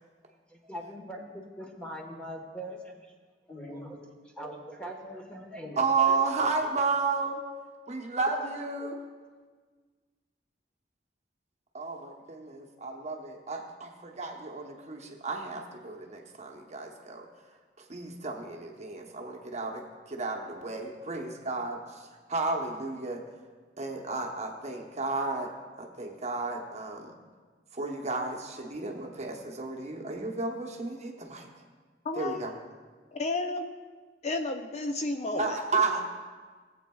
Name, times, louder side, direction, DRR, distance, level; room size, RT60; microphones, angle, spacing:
voice 1, 0.5-3.1 3.5-5.8 6.1-6.2, equal, 5° left, 1 dB, 1.3 m, -42 dB
voice 2, 5.8-7.4 7.9-9.0 11.7-17.3 17.8-23.2 23.8-25.5 25.8-27.1 27.7-31.5 32.2-32.5 35.4-36.0, right 4 dB, 40° right, 1 dB, 1.0 m, -32 dB
voice 3, 32.0-32.5 33.1-33.7 34.2-35.6, left 2 dB, 40° left, 6 dB, 0.4 m, -32 dB
18.0 x 8.3 x 2.3 m, 1.5 s
head